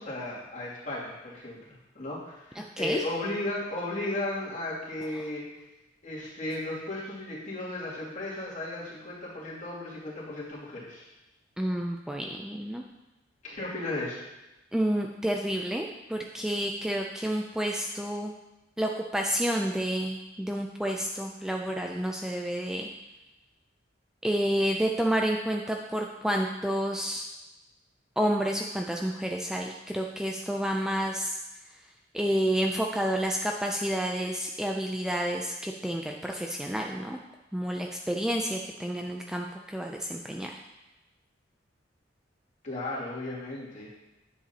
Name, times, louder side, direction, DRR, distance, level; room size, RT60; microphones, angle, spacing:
voice 1, 0.0-5.5 6.0-11.1 13.4-14.2 42.6-43.9, left 2 dB, 40° left, -7 dB, 2.6 m, -35 dB
voice 2, 2.6-3.0 11.6-12.8 14.7-18.3 18.8-22.9 24.2-27.3 28.2-31.4 32.1-37.2 37.5-40.5, equal, 5° right, 1 dB, 0.3 m, -30 dB
10.0 x 7.4 x 2.9 m, 1.0 s
head